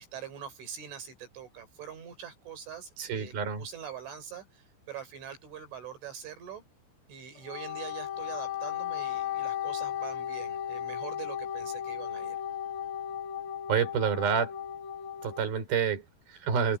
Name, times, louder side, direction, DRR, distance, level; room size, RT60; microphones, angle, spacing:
voice 1, 0.0-3.3 3.6-6.6 7.1-12.4, right 8 dB, 75° right, 6.9 m, -44 dB
voice 2, 3.0-3.7 13.7-14.5 15.2-16.8, right 7 dB, 50° right, 6.9 m, -28 dB
Wind instrument woodwind instrument, 7.4-15.4, left 10 dB, 85° left, 4.5 m, -35 dB
open air
omnidirectional pair, 5.6 m